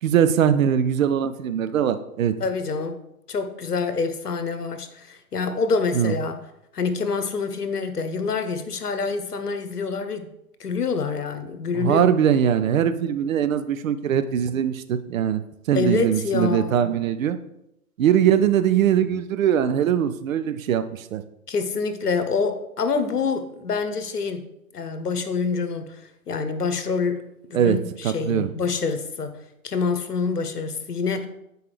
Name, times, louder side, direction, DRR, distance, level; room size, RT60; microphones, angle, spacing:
voice 1, 0.0-2.3 5.9-6.1 11.7-15.4 15.7-17.4 18.0-21.2 27.5-27.8 28.0-28.5, right 9 dB, 60° right, 11 dB, 0.7 m, -21 dB
voice 2, 2.4-3.0 3.3-6.4 6.7-10.3 10.6-12.1 15.7-16.9 21.5-24.4 24.7-25.9 26.3-27.2 27.5-29.3 29.6-31.3, left 4 dB, 85° left, 10 dB, 0.9 m, -26 dB
8.4 x 4.6 x 3.2 m, 0.83 s
figure-of-eight pair, 115°, 45 cm